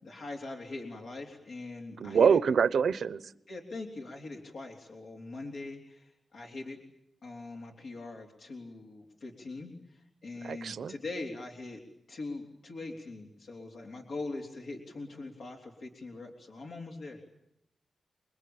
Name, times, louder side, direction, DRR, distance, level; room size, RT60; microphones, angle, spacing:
voice 1, 0.0-2.4 3.5-6.8 7.2-11.8 12.1-17.2, left 3 dB, 75° left, 0 dB, 3.8 m, -42 dB
voice 2, 2.0-3.2 10.4-10.9, right 6 dB, 90° right, 14 dB, 1.0 m, -25 dB
29.0 x 22.0 x 8.9 m, 0.80 s
wide cardioid pair, 145°, 0 cm